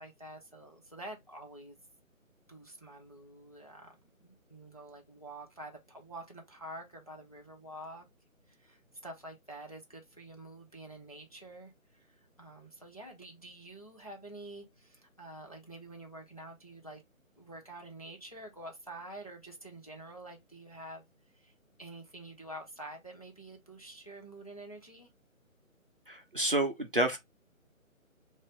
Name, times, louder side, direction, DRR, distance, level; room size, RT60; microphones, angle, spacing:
voice 1, 0.0-1.8 2.5-3.9 4.2-8.1 8.5-17.0 17.4-21.0 21.3-21.5 21.8-25.1, right 1 dB, 25° left, 0.6 m, -48 dB
voice 2, 26.1-27.2, right 1 dB, 40° right, 0.6 m, -29 dB
3.8 x 2.6 x 3.0 m
figure-of-eight pair, 155°, 42 cm